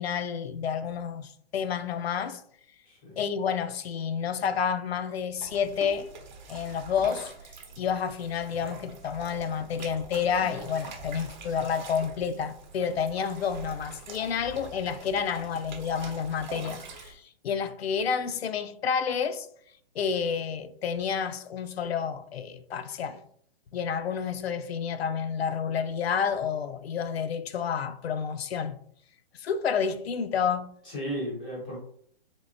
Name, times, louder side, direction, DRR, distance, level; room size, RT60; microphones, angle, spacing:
voice 1, 0.0-2.4 3.2-6.1 6.5-7.3 7.8-19.5 20.0-23.2 23.7-28.8 29.3-30.7, left 7 dB, 80° left, 0.5 m, -30 dB
voice 2, 2.8-3.3 30.8-31.8, equal, 10° left, 0.4 m, -35 dB
sound 1, 5.3-17.1, right 3 dB, 50° right, 0.8 m, -44 dB
3.6 x 3.3 x 2.6 m
hypercardioid pair, 165°, 30 cm